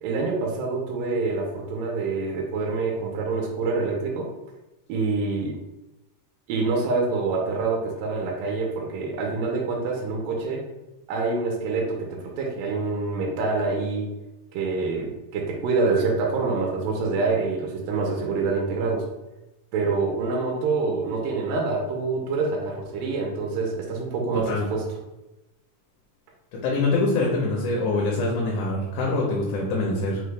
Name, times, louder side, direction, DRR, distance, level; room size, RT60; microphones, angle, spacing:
voice 1, 0.0-4.3 4.9-5.5 6.5-10.6 11.1-14.1 14.5-19.1 19.7-24.8, right 4 dB, 85° right, -1 dB, 2.3 m, -26 dB
voice 2, 24.3-24.7 26.5-30.2, left 2 dB, 75° left, -2 dB, 2.0 m, -24 dB
5.6 x 2.2 x 3.2 m, 0.97 s
omnidirectional pair, 3.9 m